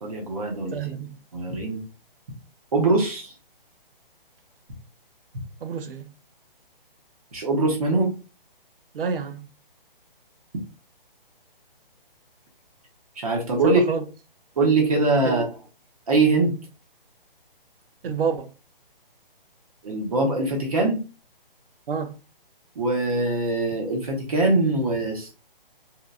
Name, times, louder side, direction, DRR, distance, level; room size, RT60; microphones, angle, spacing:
voice 1, 0.0-0.7 1.3-1.8 2.7-3.3 7.3-8.1 13.2-13.8 14.6-15.5 16.1-16.6 19.8-21.0 22.8-25.3, right 3 dB, 40° right, 0.9 m, -22 dB
voice 2, 0.7-1.2 5.6-6.1 8.9-9.5 13.6-14.0 15.2-15.5 18.0-18.5 21.9-22.2, right 6 dB, 75° right, 0.6 m, -28 dB
2.8 x 2.4 x 2.3 m
hypercardioid pair, 170°, 29 cm